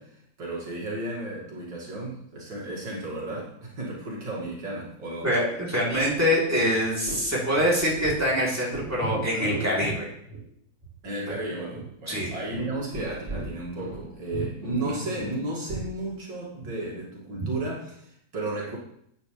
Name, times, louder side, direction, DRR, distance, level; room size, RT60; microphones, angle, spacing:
voice 1, 0.0-5.3 11.0-18.8, right 2 dB, 80° right, -5 dB, 3.1 m, -34 dB
voice 2, 5.2-10.1 12.1-12.3 14.8-15.0, equal, 10° right, -5 dB, 3.4 m, -25 dB
sound 1, 7.1-7.3 7.6-8.4 8.7-10.0 10.3-10.4 10.8-10.9 11.2-11.3 11.7-14.1 14.3-15.9, right 2 dB, 40° right, 3.7 m, -35 dB
13.5 x 9.0 x 3.3 m, 0.72 s
omnidirectional pair, 2.0 m